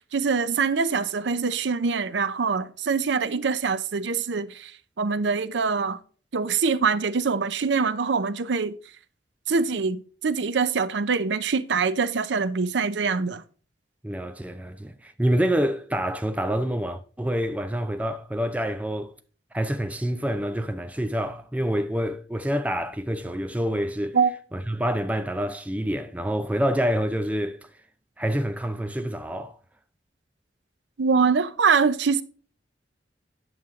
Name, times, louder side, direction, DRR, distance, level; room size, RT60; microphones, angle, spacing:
voice 1, 0.1-4.7 5.0-6.0 6.3-8.8 9.5-13.4 24.1-24.3 31.0-32.2, right 5 dB, 80° right, 0.6 m, -24 dB
voice 2, 14.0-19.1 19.5-24.2 24.5-27.7 28.2-29.5, equal, 10° right, 0.5 m, -27 dB
9.2 x 7.2 x 3.6 m
head